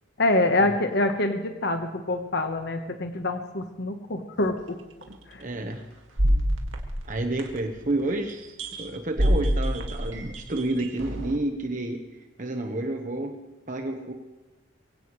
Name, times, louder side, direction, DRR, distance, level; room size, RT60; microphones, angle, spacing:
voice 1, 0.2-4.8 5.3-5.4, left 2 dB, 55° left, 6 dB, 1.2 m, -25 dB
sound 1, 5.0-5.1 6.2-7.8 8.6-8.9 9.2-11.4, equal, 75° right, 2.2 m, -26 dB
voice 2, 5.4-5.8 7.1-8.4 8.8-12.0 12.4-13.4 13.7-14.1, right 2 dB, 40° right, 4 dB, 1.2 m, -29 dB
23.0 x 17.0 x 3.2 m, 1.2 s
head